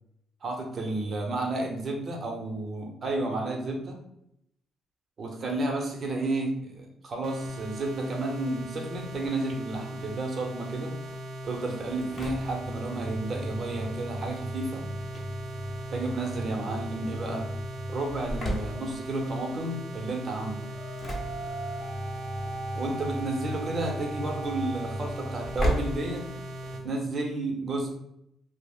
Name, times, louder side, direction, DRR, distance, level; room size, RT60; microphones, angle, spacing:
voice 1, 0.4-4.0 5.2-10.9 11.4-14.9 15.9-17.5 17.9-20.7 22.7-26.2 26.8-27.9, right 2 dB, 50° right, 1 dB, 0.7 m, -32 dB
sound 1, 7.2-26.8, right 1 dB, 90° right, 0.4 m, -39 dB
Engine / Slam, 11.8-26.9, equal, 40° left, 0.7 m, -36 dB
sound 2, 20.6-25.7, right 2 dB, 10° right, 0.6 m, -40 dB
2.4 x 2.0 x 3.5 m, 0.77 s
cardioid pair, 90°, 0 cm